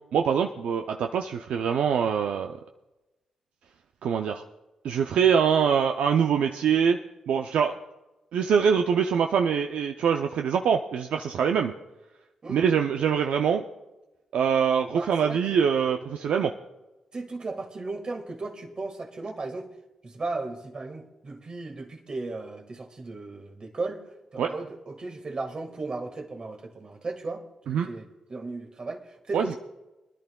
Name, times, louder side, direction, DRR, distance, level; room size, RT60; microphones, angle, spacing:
voice 1, 0.1-2.6 4.0-4.4 4.8-7.0 7.3-7.7 8.3-11.7 12.5-13.6 14.3-16.5 24.4-24.5 27.7-27.9 29.3-29.6, right 7 dB, 75° right, 4 dB, 0.4 m, -24 dB
voice 2, 12.4-12.7 14.9-15.6 16.4-16.5 17.1-19.7 20.0-24.0 24.3-27.4 27.7-29.6, right 3 dB, 45° right, 4 dB, 1.6 m, -36 dB
25.0 x 10.5 x 2.3 m, 1.0 s
supercardioid pair, 50°, 2 cm